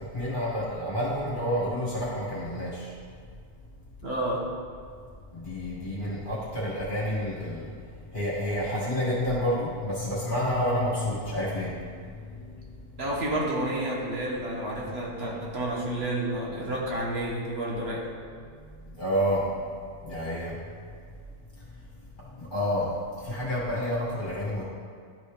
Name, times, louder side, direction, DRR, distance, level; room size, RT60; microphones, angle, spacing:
voice 1, 0.1-2.9 5.3-7.7 8.1-11.7 12.0-12.6 19.0-19.4 20.0-20.5 22.3-22.9 23.2-24.6, equal, 40° left, -9 dB, 2.1 m, -29 dB
voice 2, 4.0-4.5 13.0-18.1, right 1 dB, 55° right, -3 dB, 1.4 m, -30 dB
12.0 x 4.2 x 3.4 m, 2.1 s
omnidirectional pair, 1.3 m